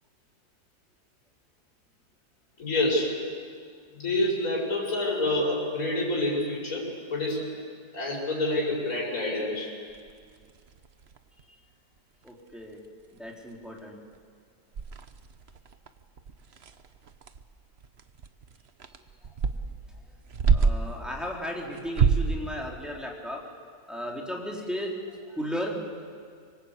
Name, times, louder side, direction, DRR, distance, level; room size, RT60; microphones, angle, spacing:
voice 1, 2.6-3.2 3.9-7.4 7.9-9.7, left 1 dB, 55° left, -4 dB, 6.2 m, -27 dB
sound 1, 9.9-11.4 12.0-12.1 12.3-12.5 12.8-12.9 13.3-13.8 14.1-14.2 14.7-21.0 21.8-22.4, right 5 dB, 45° right, 1.1 m, -28 dB
voice 2, 12.2-12.8 13.1-14.0 20.5-23.4 23.9-25.8, equal, ahead, -2 dB, 3.9 m, -35 dB
25.5 x 24.0 x 8.4 m, 2.1 s
omnidirectional pair, 1.7 m